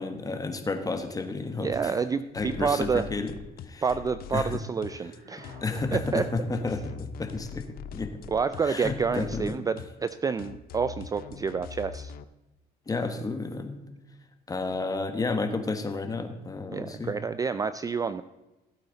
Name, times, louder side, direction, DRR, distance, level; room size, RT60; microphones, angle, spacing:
voice 1, 0.0-1.9 2.3-3.3 3.6-3.8 4.3-4.6 5.6-8.1 8.6-9.6 12.9-13.8 14.5-17.1, left 3 dB, 20° left, 6 dB, 1.3 m, -31 dB
voice 2, 1.6-3.1 3.8-5.6 5.9-6.2 8.3-12.1 16.7-18.2, right 5 dB, 20° right, 13 dB, 0.3 m, -29 dB
sound 1, 2.3-12.2, left 7 dB, 60° left, 0.6 m, -42 dB
sound 2, 4.6-6.9, right 3 dB, 50° right, 2.3 m, -52 dB
15.5 x 8.3 x 4.0 m, 1.0 s
cardioid pair, 110°, 17 cm